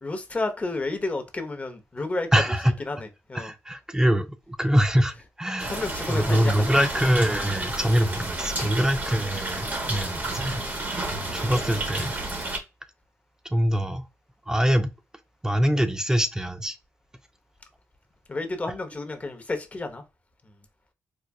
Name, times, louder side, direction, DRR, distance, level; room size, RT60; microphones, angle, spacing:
voice 1, 0.0-2.3 2.9-3.5 5.7-6.5 8.6-8.7 18.3-20.0 20.4-20.5, left 2 dB, 25° left, 0.8 m, -31 dB
voice 2, 2.3-2.8 3.3-5.8 6.1-10.6 11.3-12.1 13.5-14.0 14.5-14.9 15.4-16.8, equal, 10° right, 0.3 m, -24 dB
sound 1, 5.6-12.6, right 2 dB, 30° right, 0.9 m, -31 dB
4.6 x 2.3 x 2.3 m
cardioid pair, 95°, 6 cm